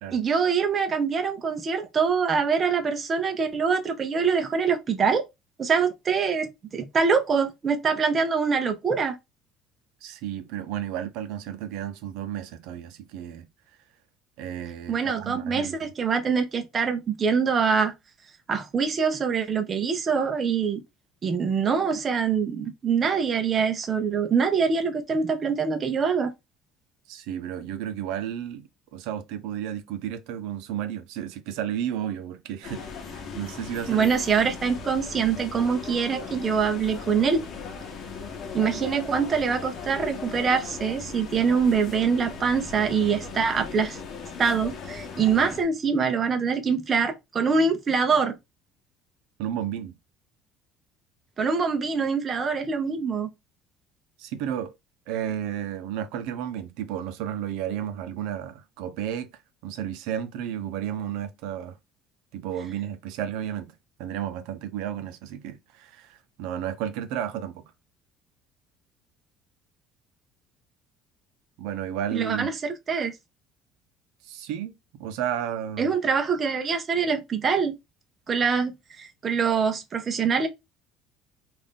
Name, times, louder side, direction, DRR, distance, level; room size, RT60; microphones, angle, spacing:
voice 1, 0.1-5.2 5.6-9.2 14.9-17.9 18.5-20.8 21.2-26.3 33.9-37.5 38.5-44.0 44.4-48.4 51.4-53.3 72.1-73.1 75.8-77.7 78.3-80.5, right 5 dB, 25° right, 0.6 m, -24 dB
voice 2, 10.0-13.5 14.4-15.8 27.1-32.8 33.1-34.1 34.4-34.5 49.4-49.9 54.2-54.7 55.1-59.3 59.6-61.8 62.3-63.7 64.0-67.6 71.6-72.5 74.2-74.7 75.0-75.9, right 10 dB, 80° right, 0.6 m, -32 dB
sound 1, 32.6-45.6, left 5 dB, 40° left, 1.0 m, -38 dB
3.8 x 2.5 x 3.6 m
cardioid pair, 160°, 0 cm